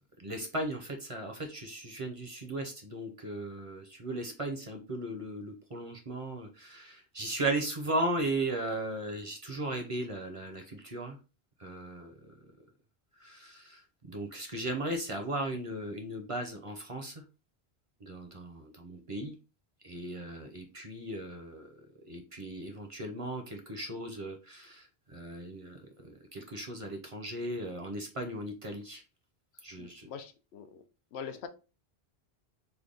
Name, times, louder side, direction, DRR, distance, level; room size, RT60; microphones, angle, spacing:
voice 1, 0.2-11.2 11.6-12.3 13.2-17.2 18.0-19.3 19.8-21.7 22.1-29.0 29.6-30.1, right 1 dB, 40° right, 0.6 m, -37 dB
voice 2, 29.8-30.8 31.1-31.5, left 7 dB, 85° left, 0.8 m, -43 dB
3.4 x 2.2 x 3.6 m
omnidirectional pair, 1.1 m